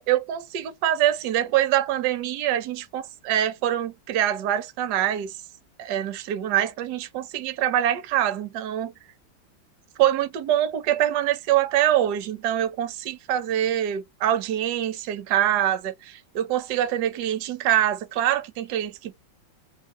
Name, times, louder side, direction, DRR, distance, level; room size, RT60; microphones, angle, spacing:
voice 1, 0.0-5.4 5.8-8.9 10.0-19.2, right 11 dB, 70° right, 1.0 m, -24 dB
3.5 x 2.5 x 3.6 m
omnidirectional pair, 2.2 m